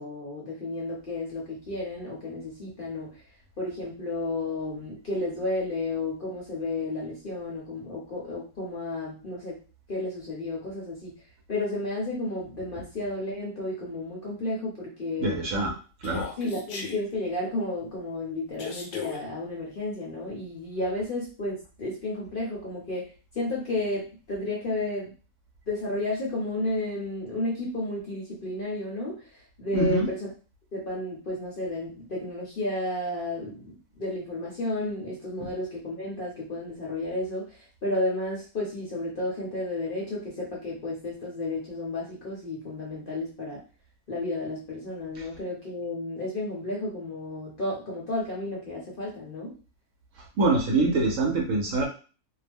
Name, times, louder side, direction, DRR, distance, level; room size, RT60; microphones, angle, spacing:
voice 1, 0.0-3.2 3.6-9.6 9.9-11.1 11.5-15.4 16.4-23.1 23.3-25.1 25.7-30.3 30.7-43.6 44.1-49.6, left 2 dB, 45° left, -4 dB, 0.8 m, -32 dB
voice 2, 15.2-15.7 16.0-16.3 29.7-30.1 50.4-51.9, right 2 dB, 65° right, 0 dB, 1.0 m, -24 dB
Human voice, 16.0-17.0 18.6-19.2, left 6 dB, 70° left, 1.1 m, -36 dB
2.8 x 2.0 x 3.4 m, 0.35 s
omnidirectional pair, 1.6 m